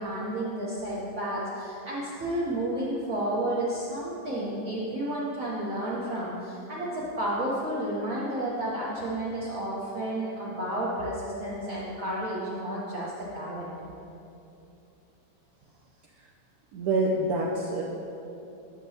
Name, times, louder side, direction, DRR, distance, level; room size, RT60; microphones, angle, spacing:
voice 1, 0.0-13.7, right 1 dB, 50° right, -8 dB, 1.2 m, -31 dB
voice 2, 16.7-17.8, right 2 dB, 70° right, -3 dB, 0.9 m, -26 dB
8.8 x 6.7 x 2.7 m, 2.8 s
omnidirectional pair, 2.1 m